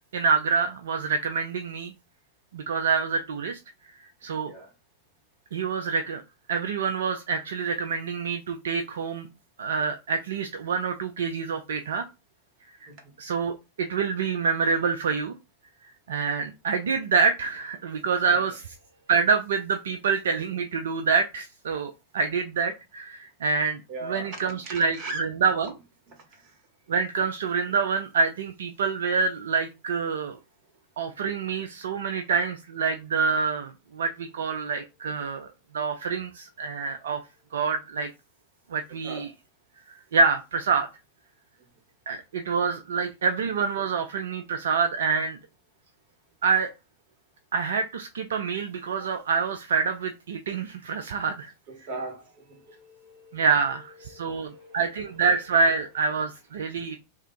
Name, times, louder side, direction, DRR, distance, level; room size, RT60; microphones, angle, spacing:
voice 1, 0.1-1.9 2.5-3.6 4.2-4.5 5.5-6.2 6.5-9.3 9.6-12.1 13.2-15.3 16.1-18.6 19.1-25.7 26.9-30.4 31.0-35.5 35.7-37.2 37.5-38.1 38.7-39.3 40.1-40.9 42.1-45.4 46.4-46.7 47.5-51.5 53.3-57.0, right 5 dB, 65° right, 0.4 m, -26 dB
voice 2, 23.9-25.2 39.0-39.3 51.7-53.5 54.0-55.2, right 2 dB, 40° right, 1.5 m, -39 dB
3.3 x 2.4 x 4.3 m
figure-of-eight pair, 90°, 0 cm